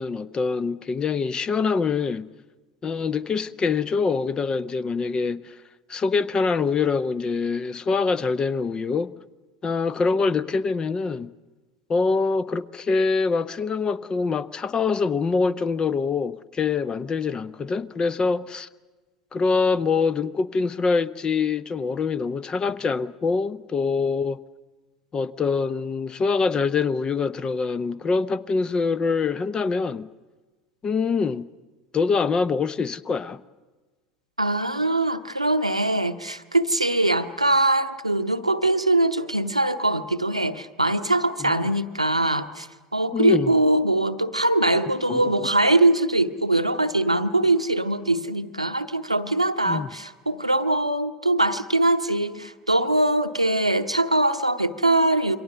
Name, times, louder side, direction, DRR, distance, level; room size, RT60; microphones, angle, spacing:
voice 1, 0.0-2.3 2.8-5.5 5.9-9.1 9.6-11.3 11.9-18.7 19.3-24.4 25.1-30.1 30.8-31.4 31.9-33.4 41.4-41.6 43.1-43.5 45.1-45.5 49.7-49.9, left 4 dB, 25° left, 0.7 m, -24 dB
voice 2, 34.4-55.4, right 1 dB, 90° right, 0.8 m, -22 dB
28.0 x 23.5 x 6.8 m
figure-of-eight pair, 75°, 3 cm